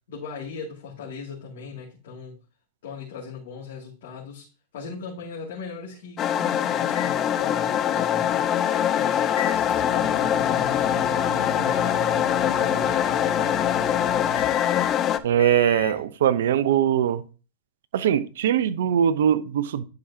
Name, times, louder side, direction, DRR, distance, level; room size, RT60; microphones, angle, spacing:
voice 1, 0.1-2.4 2.8-4.5 4.7-8.4 8.9-9.4 9.9-13.2, left 5 dB, 65° left, 2.4 m, -38 dB
sound 1, 6.2-15.2, left 10 dB, 35° left, 0.5 m, -23 dB
sound 2, 6.9-16.0, left 2 dB, 85° left, 1.8 m, -37 dB
voice 2, 15.2-17.2 17.9-19.8, right 9 dB, 70° right, 0.6 m, -21 dB
10.5 x 5.0 x 2.8 m
hypercardioid pair, 105°, 0 cm